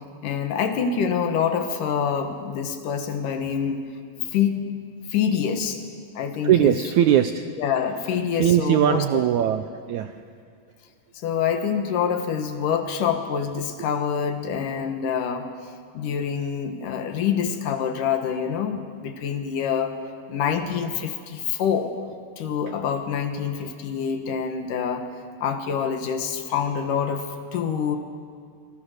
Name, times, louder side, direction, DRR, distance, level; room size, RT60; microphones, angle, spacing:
voice 1, 0.2-3.8 4.3-4.7 5.1-5.8 6.2-6.8 7.6-9.2 11.1-15.5 15.9-20.0 20.3-21.9 22.4-25.1 25.4-28.0, left 7 dB, 70° left, 7 dB, 2.8 m, -26 dB
voice 2, 6.4-7.5 8.3-10.2 12.0-12.1, right 10 dB, 80° right, 9 dB, 1.7 m, -20 dB
26.0 x 21.5 x 6.6 m, 2.2 s
omnidirectional pair, 4.1 m